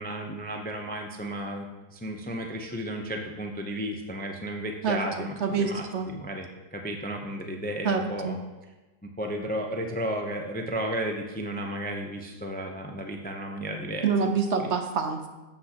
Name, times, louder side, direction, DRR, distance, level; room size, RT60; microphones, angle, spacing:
voice 1, 0.0-1.7 1.9-8.4 9.0-14.1 14.6-14.7, right 1 dB, 10° left, 2 dB, 0.4 m, -33 dB
voice 2, 4.8-6.1 7.8-8.4 14.0-15.3, right 5 dB, 55° right, 5 dB, 1.0 m, -27 dB
12.0 x 7.7 x 2.9 m, 1.1 s
omnidirectional pair, 1.5 m